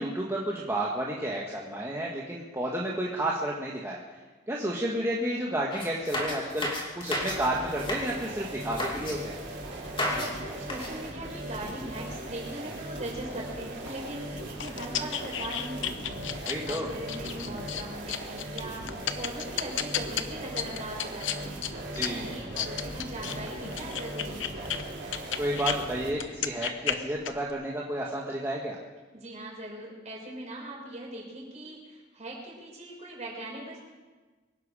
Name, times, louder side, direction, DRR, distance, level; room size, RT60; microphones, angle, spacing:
voice 1, 0.0-4.0 4.5-6.7 6.9-9.3 16.4-16.9 21.9-22.3 25.4-28.8, right 1 dB, 15° right, -3 dB, 1.5 m, -31 dB
sound 1, 5.7-7.4 7.7-8.1 8.6-9.2 9.8-10.3 10.6-10.9, left 1 dB, 25° left, 2.7 m, -32 dB
sound 2, 7.2-26.1, right 1 dB, 70° right, 4.6 m, -39 dB
voice 2, 10.1-16.2 16.7-24.6 29.1-33.8, right 1 dB, 40° right, -3 dB, 5.7 m, -40 dB
sound 3, 13.9-25.8 26.1-27.5, left 9 dB, 85° left, 0.9 m, -34 dB
24.0 x 11.0 x 4.9 m, 1.3 s
head